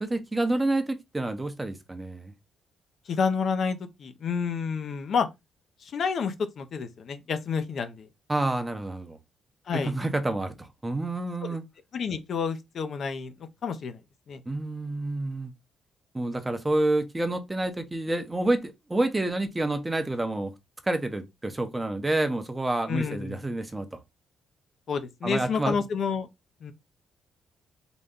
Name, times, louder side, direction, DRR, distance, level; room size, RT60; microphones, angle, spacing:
voice 1, 0.0-2.3 8.3-9.2 9.7-11.6 14.5-15.5 16.1-20.5 20.8-24.0 25.2-25.8, right 2 dB, 15° right, 0.7 m, -28 dB
voice 2, 3.1-5.3 5.8-8.1 9.7-9.9 11.4-11.6 11.9-13.3 13.6-14.0 14.3-14.4 22.9-23.4 24.9-26.3 26.6-26.7, left 5 dB, 60° left, 0.7 m, -29 dB
3.9 x 2.2 x 3.6 m
cardioid pair, 90°, 0 cm